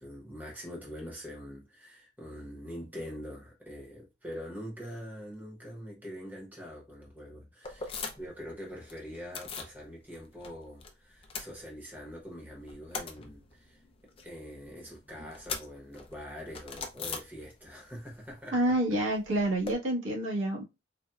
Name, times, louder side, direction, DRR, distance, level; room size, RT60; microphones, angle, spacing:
voice 1, 0.0-13.8 14.2-18.8, equal, 10° right, 0.9 m, -44 dB
sound 1, 7.6-8.4 8.7-9.8 10.1-10.9 11.1-12.2 12.5-17.9 18.1-19.7, left 4 dB, 30° left, 0.4 m, -41 dB
voice 2, 18.5-20.6, right 1 dB, 85° right, 1.3 m, -28 dB
4.0 x 2.2 x 2.3 m
head